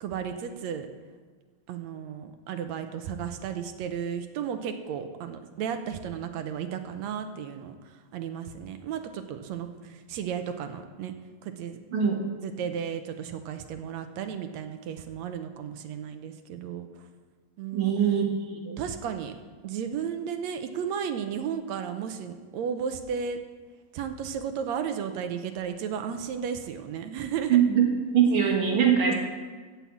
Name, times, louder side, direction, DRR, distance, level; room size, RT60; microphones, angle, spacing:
voice 1, 0.0-0.9 1.7-11.1 11.4-11.8 12.4-17.0 17.6-17.9 18.8-19.3 19.6-23.4 23.9-27.6 29.0-29.1, right 7 dB, 75° right, 8 dB, 1.9 m, -34 dB
voice 2, 17.7-18.8 27.5-27.9 28.1-29.1, right 8 dB, 50° right, 0 dB, 2.4 m, -22 dB
14.5 x 5.7 x 8.5 m, 1.5 s
omnidirectional pair, 3.4 m